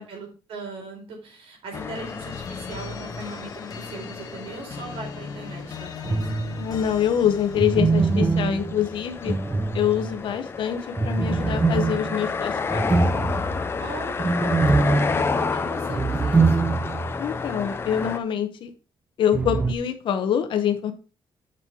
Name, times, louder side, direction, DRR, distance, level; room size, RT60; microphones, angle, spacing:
voice 1, 0.0-6.5 13.8-16.7, right 3 dB, 80° right, 2 dB, 4.6 m, -39 dB
sound 1, 1.7-8.4, left 6 dB, 45° left, 1.4 m, -38 dB
sound 2, 1.7-18.2, left 5 dB, 25° left, 0.7 m, -31 dB
sound 3, 6.0-6.8 7.5-10.3 11.0-17.2 17.5-17.6 19.3-19.7, right 3 dB, 15° right, 0.4 m, -23 dB
voice 2, 6.6-9.3 9.7-12.9 17.2-18.7 19.2-20.9, left 9 dB, 65° left, 7 dB, 1.0 m, -25 dB
8.8 x 6.3 x 4.6 m, 0.35 s
cardioid pair, 175°, 9 cm